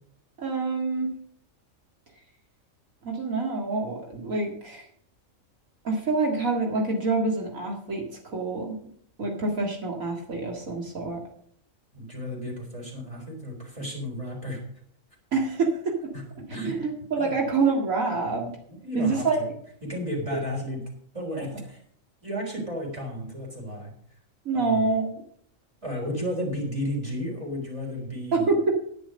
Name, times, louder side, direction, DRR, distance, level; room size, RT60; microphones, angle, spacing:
voice 1, 0.4-1.1 3.0-4.8 5.8-8.0 8.3-8.8 9.2-11.2 15.3-16.1 16.6-18.5 18.9-19.4 24.5-25.1 28.3-28.7, right 3 dB, 85° right, 0 dB, 2.4 m, -26 dB
voice 2, 11.9-14.6 16.1-16.7 17.2-17.4 18.7-19.5 19.8-20.8 21.1-21.8 22.2-23.9 24.5-24.9 25.8-28.5, equal, 25° right, -1 dB, 4.2 m, -33 dB
10.0 x 10.0 x 5.2 m, 0.64 s
omnidirectional pair, 1.4 m